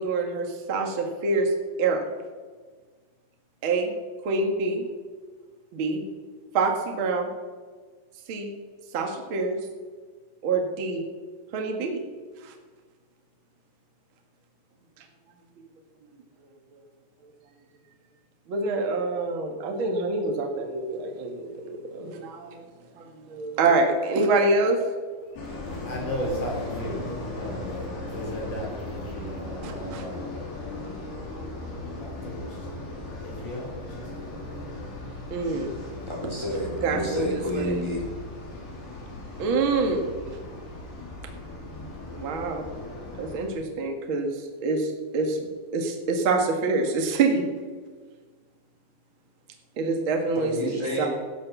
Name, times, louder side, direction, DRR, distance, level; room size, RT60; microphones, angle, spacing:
voice 1, 0.0-1.5 1.8-2.1 3.6-3.9 4.2-4.9 5.7-6.0 6.5-7.3 8.3-8.5 8.9-9.6 10.4-11.0 11.5-12.0 12.4-12.5 18.5-22.6 22.9-24.8 29.6-30.0 35.3-35.7 36.8-37.7 39.4-40.1 42.1-42.7 43.2-47.4 49.8-50.7 51.0-51.1, right 3 dB, 80° right, 3 dB, 1.1 m, -26 dB
voice 2, 25.2-35.2 36.0-36.1, equal, 35° left, -1 dB, 4.5 m, -37 dB
sound 1, 25.4-43.5, left 2 dB, 60° left, 5.4 m, -37 dB
voice 3, 36.1-38.0 50.4-51.1, equal, 10° left, -2 dB, 2.4 m, -29 dB
14.0 x 11.5 x 7.0 m, 1.5 s
omnidirectional pair, 5.5 m